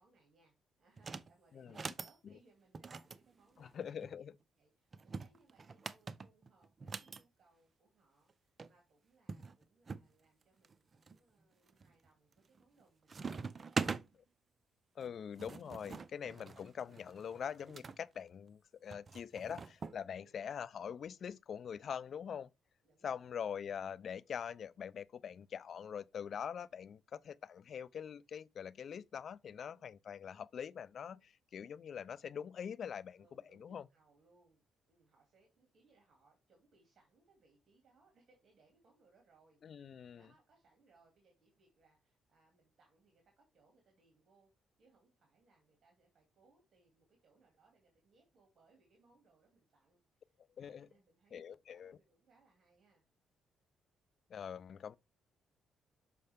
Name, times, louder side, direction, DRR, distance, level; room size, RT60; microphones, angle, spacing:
voice 1, 0.0-3.9 4.6-13.9 16.3-16.5 20.1-20.4 22.8-23.5 29.5-29.9 31.1-31.3 33.1-53.0, right 3 dB, 55° right, 2.4 m, -71 dB
sound 1, 1.0-1.3 1.7-2.1 2.7-4.1 4.9-7.2 8.3-8.4 8.6-8.7 9.3-10.1 10.6-11.1 11.7-12.1 12.4-12.8 13.1-14.0 15.0-18.0 18.9-20.0, right 5 dB, 35° right, 0.5 m, -43 dB
voice 2, 1.5-1.9 2.2-2.3 3.6-4.3 15.0-22.5 23.0-33.2 33.6-33.8 39.6-40.3 50.6-50.9 51.3-52.0 54.3-55.0, left 8 dB, 55° left, 0.4 m, -44 dB
6.6 x 5.3 x 3.4 m
cardioid pair, 90°, 0 cm